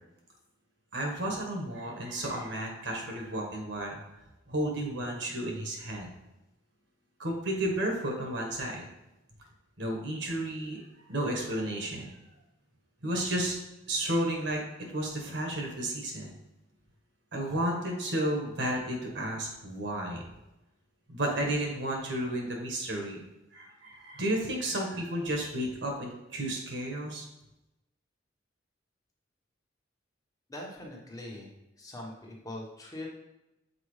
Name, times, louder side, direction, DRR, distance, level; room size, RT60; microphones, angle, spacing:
voice 1, 0.9-4.0 4.5-6.1 7.2-8.8 9.8-12.1 13.0-13.6 13.9-14.6 14.9-16.3 17.3-20.3 21.1-23.2 23.5-27.2, right 1 dB, 65° right, 1 dB, 1.5 m, -32 dB
voice 2, 30.5-31.5 31.8-33.2, left 1 dB, 20° left, -2 dB, 1.2 m, -42 dB
6.8 x 4.6 x 3.3 m, 0.94 s
head